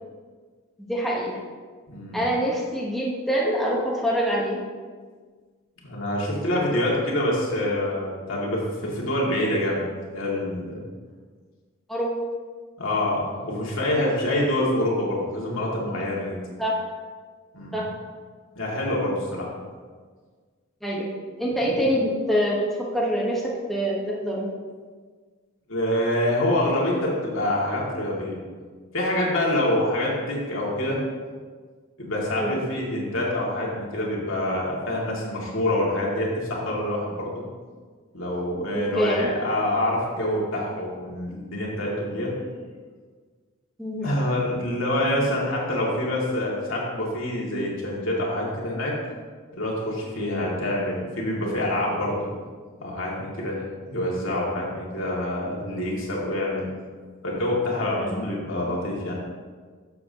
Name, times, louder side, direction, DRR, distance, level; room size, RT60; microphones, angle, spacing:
voice 1, 0.8-1.4 2.1-4.6 11.9-12.1 16.6-16.8 17.7-17.9 20.8-21.1 21.4-22.7 22.9-23.4 23.7-24.5 32.3-32.6 38.7-39.3 43.8-44.2 50.2-50.4 58.0-58.2, equal, ahead, -5 dB, 1.2 m, -25 dB
voice 2, 1.9-2.2 5.8-9.8 10.1-10.8 12.8-16.3 17.5-17.8 18.6-19.5 21.7-21.8 25.7-28.4 28.9-31.0 32.0-37.4 38.1-42.3 44.0-49.0 49.5-52.3 52.8-56.6 57.2-59.1, left 1 dB, 70° left, -4 dB, 2.3 m, -26 dB
11.5 x 7.3 x 2.9 m, 1.5 s
head